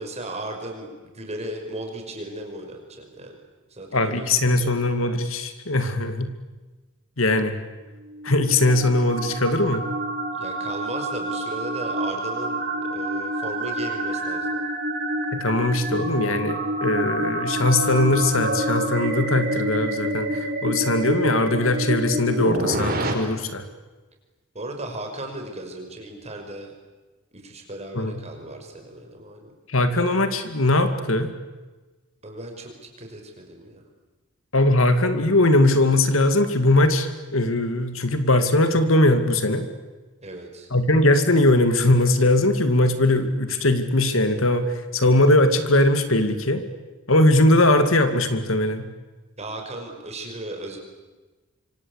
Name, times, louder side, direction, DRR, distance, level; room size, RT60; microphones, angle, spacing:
voice 1, 0.0-3.4 3.7-4.9 10.3-14.5 24.5-26.7 27.3-29.5 32.2-32.7 33.0-33.8 40.2-40.7 49.4-50.8, right 1 dB, 30° right, 3 dB, 5.7 m, -36 dB
voice 2, 3.9-6.3 7.2-7.6 8.2-9.8 15.3-23.6 27.9-28.1 29.7-31.3 34.5-39.7 40.7-46.7 47.1-48.9, left 1 dB, 70° left, 9 dB, 2.4 m, -20 dB
sound 1, 8.0-23.1, right 1 dB, 45° right, 5.6 m, -28 dB
26.0 x 26.0 x 8.3 m, 1.2 s
head